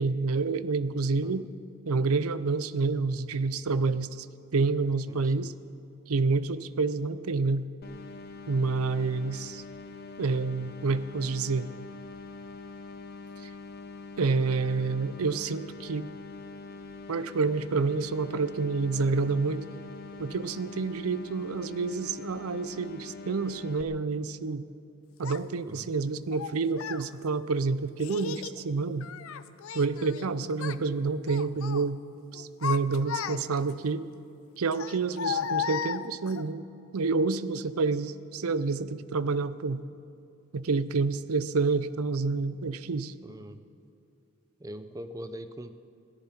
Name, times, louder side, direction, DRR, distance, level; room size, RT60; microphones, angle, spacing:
voice 1, 0.0-1.5 1.9-4.3 4.5-5.5 6.1-7.7 8.5-9.6 10.2-11.7 13.4-13.5 14.2-16.1 17.1-19.7 20.2-24.6 25.2-29.1 29.7-32.0 32.3-34.1 34.6-36.6 36.9-39.8 40.5-43.1, right 4 dB, 90° right, 15 dB, 0.6 m, -28 dB
voice 2, 5.1-5.5 25.7-25.9 43.2-43.6 44.6-45.8, equal, 15° right, 10 dB, 0.5 m, -42 dB
sound 1, 7.8-23.8, left 3 dB, 45° left, 0.7 m, -44 dB
Child speech kid speaking, 25.2-25.4 26.3-27.1 28.0-28.6 29.0-30.3 30.5-30.8 31.2-31.8 32.3-33.7 34.7-36.4, left 7 dB, 75° left, 0.5 m, -34 dB
21.5 x 14.0 x 4.4 m, 2.6 s
head